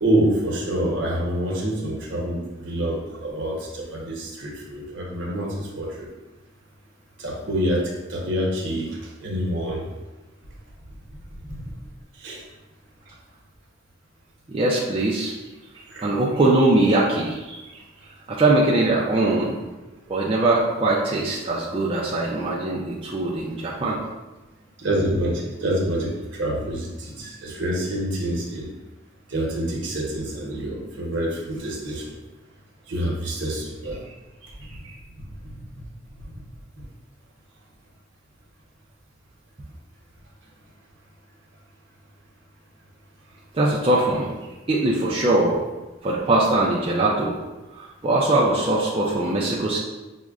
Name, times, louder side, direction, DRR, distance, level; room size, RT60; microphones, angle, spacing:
voice 1, 0.0-6.1 7.2-8.9 9.2-9.9 11.5-11.6 12.2-12.4 15.9-16.1 24.8-28.7 29.3-32.1 32.9-34.0 35.4-35.5 36.2-36.3, right 1 dB, 70° right, -3 dB, 0.9 m, -26 dB
voice 2, 14.5-15.3 15.7-19.5 20.1-24.0 34.7-35.0 43.5-44.4 44.7-45.6 46.0-47.4 47.7-49.8, right 2 dB, 30° right, -5 dB, 0.4 m, -22 dB
6.0 x 2.1 x 2.3 m, 1.1 s
head